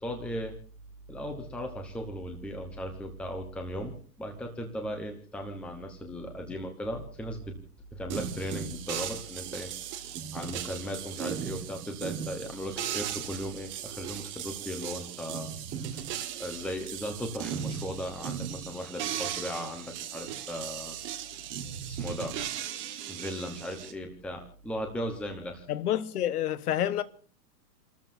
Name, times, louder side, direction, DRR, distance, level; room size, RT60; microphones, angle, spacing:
voice 1, 0.0-0.5 1.1-7.5 7.9-9.7 10.0-15.5 15.9-16.0 16.4-21.0 21.3-21.4 21.8-22.3 23.1-25.7, equal, ahead, 1.0 m, -37 dB
sound 1, 8.1-23.9, right 9 dB, 25° right, 1.5 m, -37 dB
voice 2, 25.7-27.0, left 11 dB, 70° left, 1.3 m, -28 dB
29.5 x 13.5 x 2.7 m
hypercardioid pair, 155°, 47 cm